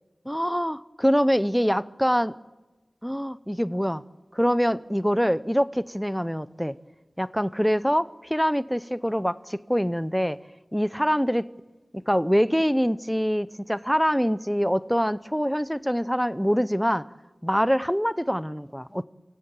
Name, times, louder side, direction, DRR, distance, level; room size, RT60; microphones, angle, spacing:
voice 1, 0.3-2.3 3.0-4.0 4.3-6.8 7.2-10.4 10.7-11.5 11.9-17.1 17.4-19.0, equal, ahead, 0.7 m, -24 dB
28.5 x 17.0 x 9.1 m
wide cardioid pair, 60°, 0 cm